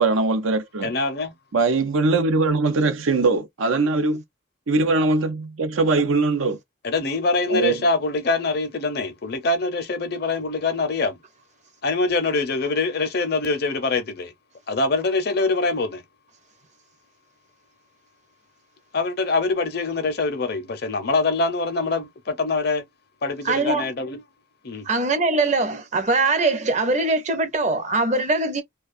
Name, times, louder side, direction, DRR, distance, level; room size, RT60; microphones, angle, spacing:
voice 1, 0.0-0.9 1.5-4.2 4.7-6.6 7.5-7.8, right 3 dB, 85° right, 0.6 m, -21 dB
voice 2, 0.8-1.3 6.8-11.2 11.8-14.3 14.7-16.0 18.9-22.8 23.2-24.2 24.6-24.8, left 3 dB, 50° left, 0.6 m, -24 dB
voice 3, 23.4-23.9 24.8-28.6, right 3 dB, 35° right, 0.6 m, -22 dB
2.4 x 2.3 x 2.4 m
head